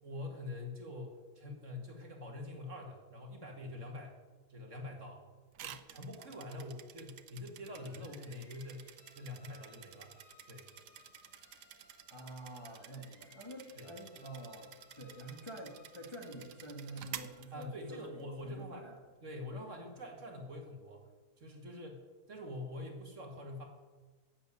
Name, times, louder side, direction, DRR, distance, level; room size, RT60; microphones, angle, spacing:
voice 1, 0.0-4.2 4.5-5.2 5.6-10.1 10.4-10.7 13.8-13.9 17.5-18.9 19.2-21.1 21.4-23.6, left 2 dB, 50° right, 3 dB, 2.3 m, -45 dB
sound 1, 5.5-18.2, right 10 dB, 90° right, 1.4 m, -52 dB
sound 2, 7.8-17.4, left 3 dB, 85° left, 3.0 m, -64 dB
voice 2, 12.1-14.7 15.0-19.0, right 1 dB, 20° left, 1 dB, 1.8 m, -47 dB
11.0 x 7.6 x 9.7 m, 1.3 s
omnidirectional pair, 1.7 m